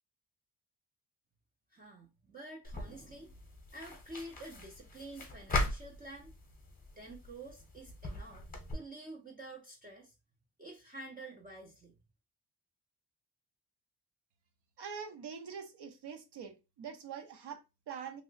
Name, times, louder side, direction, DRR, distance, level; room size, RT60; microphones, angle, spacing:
voice 1, 1.7-3.4 3.7-6.3 7.0-8.5 8.7-10.1 10.6-12.0, right 2 dB, 20° right, 0.4 m, -49 dB
sound 1, 2.6-8.7, left 2 dB, 20° left, 0.7 m, -40 dB
voice 2, 14.8-18.2, right 7 dB, 75° right, 0.8 m, -44 dB
3.0 x 2.0 x 3.8 m
wide cardioid pair, 175°, 41 cm